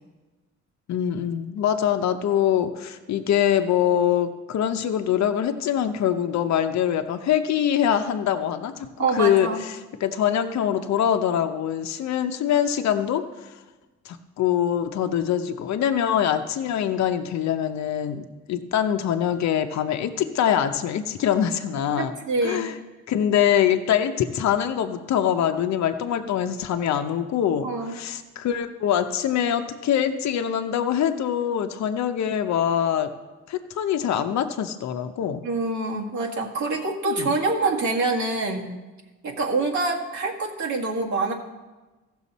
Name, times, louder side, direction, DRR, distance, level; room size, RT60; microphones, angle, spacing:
voice 1, 0.9-9.5 10.0-13.5 14.0-22.1 22.4-22.7 23.1-33.1 33.5-35.4 37.1-37.3, left 9 dB, 65° left, 7 dB, 0.7 m, -24 dB
voice 2, 9.0-9.6 22.0-22.7 27.6-27.9 35.4-38.8 39.2-41.3, right 3 dB, 70° right, -2 dB, 1.9 m, -25 dB
15.0 x 6.3 x 4.2 m, 1.2 s
cardioid pair, 90°, 30 cm